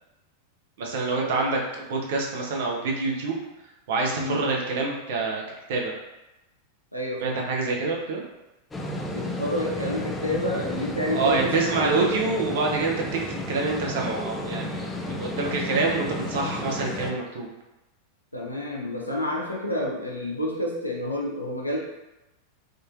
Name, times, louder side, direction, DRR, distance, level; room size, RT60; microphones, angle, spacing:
voice 1, 0.8-3.4 3.9-5.4 5.7-5.9 7.2-8.2 11.1-17.5, right 3 dB, 55° right, -1 dB, 0.6 m, -26 dB
voice 2, 6.9-7.4 9.1-12.1 18.3-21.8, left 1 dB, 90° left, -2 dB, 0.6 m, -29 dB
sound 1, 8.7-17.1, left 2 dB, 15° left, 0.3 m, -32 dB
3.7 x 2.6 x 2.4 m, 0.99 s
figure-of-eight pair, 90°, 0 cm